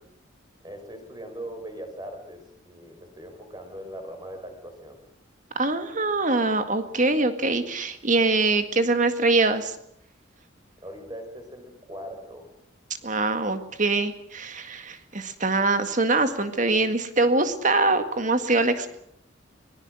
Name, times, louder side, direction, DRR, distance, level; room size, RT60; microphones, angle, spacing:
voice 1, 0.6-5.0 10.8-12.5, right 1 dB, 20° right, 5 dB, 5.0 m, -40 dB
voice 2, 5.6-9.8 13.0-18.9, right 3 dB, 40° right, 9 dB, 1.9 m, -23 dB
24.5 x 19.5 x 6.3 m, 0.71 s
head